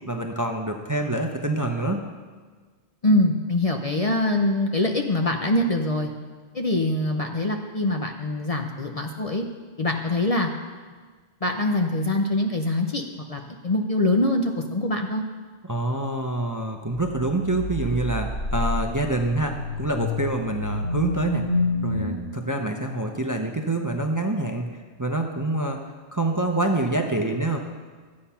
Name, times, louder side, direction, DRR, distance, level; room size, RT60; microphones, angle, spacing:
voice 1, 0.1-2.0 15.6-21.4 21.8-24.7 25.0-25.8 26.1-27.6, right 2 dB, 20° right, 3 dB, 0.7 m, -26 dB
voice 2, 3.0-6.1 6.5-9.4 9.8-10.5 11.4-13.0 13.3-15.2, left 1 dB, 35° left, 3 dB, 0.7 m, -24 dB
sound 1, 16.9-22.2, left 2 dB, 55° left, 1.5 m, -28 dB
13.0 x 8.6 x 5.7 m, 1.5 s
omnidirectional pair, 1.2 m